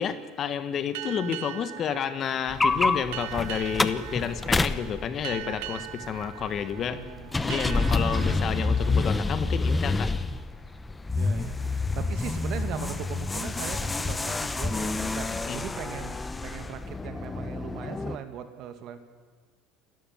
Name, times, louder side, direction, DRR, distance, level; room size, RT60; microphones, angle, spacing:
voice 1, 0.0-7.0 7.4-10.1 15.3-15.6, left 7 dB, 45° left, 11 dB, 1.5 m, -30 dB
sound 1, 0.9-10.2, right 17 dB, 80° right, 0.8 m, -41 dB
sound 2, 2.5-18.2, left 3 dB, 15° left, 0.9 m, -28 dB
voice 2, 6.9-8.2 11.2-19.0, right 9 dB, 55° right, 8 dB, 2.2 m, -40 dB
28.0 x 12.5 x 7.3 m, 1.5 s
supercardioid pair, 100°, 0 cm